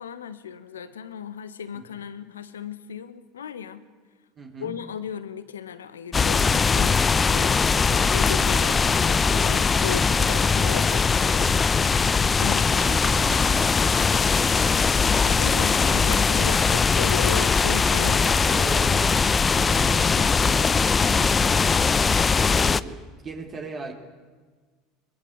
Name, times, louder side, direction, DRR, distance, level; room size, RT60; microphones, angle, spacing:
voice 1, 0.0-3.8 4.6-11.7 12.0-12.6 13.0-13.2 15.2-18.7, left 8 dB, 85° left, 13 dB, 1.5 m, -36 dB
voice 2, 4.4-4.8 12.3-14.9 15.6-16.1 18.4-19.2 19.5-21.8 22.4-23.9, right 3 dB, 35° right, 3 dB, 3.5 m, -38 dB
sound 1, 6.1-22.8, left 5 dB, 25° left, 0.8 m, -21 dB
22.5 x 22.0 x 8.1 m, 1.4 s
hypercardioid pair, 75°, 0 cm